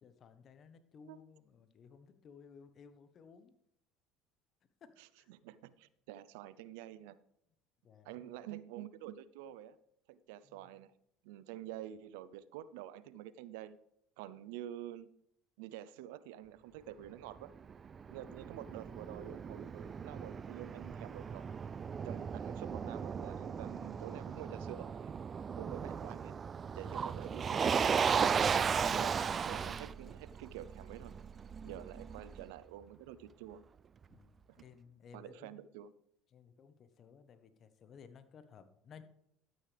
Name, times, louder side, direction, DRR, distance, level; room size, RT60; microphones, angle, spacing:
voice 1, 0.0-3.5 4.8-4.9 5.2-5.3 7.8-8.3 10.4-10.6 31.6-31.8 34.1-35.6 36.3-39.0, left 6 dB, 45° left, 10 dB, 1.2 m, -58 dB
voice 2, 5.0-7.2 8.0-9.8 10.1-10.9 11.2-13.8 14.2-15.1 15.6-17.5 18.1-21.4 22.0-25.1 25.5-26.3 26.7-29.1 29.4-31.1 31.6-33.6 34.5-34.6 35.1-35.9, right 12 dB, 80° right, 16 dB, 0.6 m, -48 dB
Motor vehicle (road), 17.4-32.4, right 6 dB, 35° right, 0.3 m, -36 dB
12.5 x 9.2 x 3.4 m, 0.73 s
supercardioid pair, 85°, 0 cm